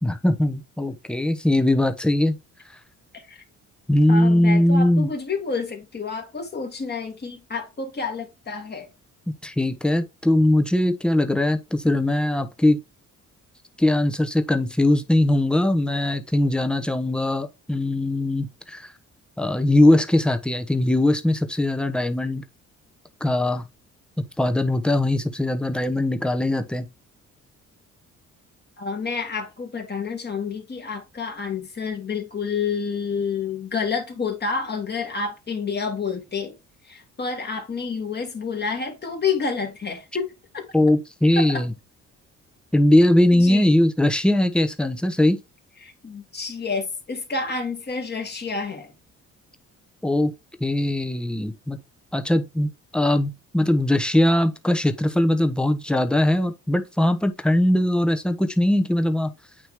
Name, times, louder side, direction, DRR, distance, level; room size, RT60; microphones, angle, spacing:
voice 1, 0.0-2.3 3.9-5.1 9.4-12.8 13.8-18.9 19.4-22.4 23.2-23.6 24.4-26.9 40.7-41.7 42.7-45.4 50.0-50.3 50.6-51.8 52.1-59.3, left 1 dB, 5° left, 0.9 m, -20 dB
voice 2, 4.1-8.9 28.8-36.5 36.9-40.6 41.4-41.6 43.3-43.7 45.8-48.9, left 5 dB, 35° left, 2.1 m, -29 dB
8.9 x 3.1 x 3.6 m
cardioid pair, 90°, 30 cm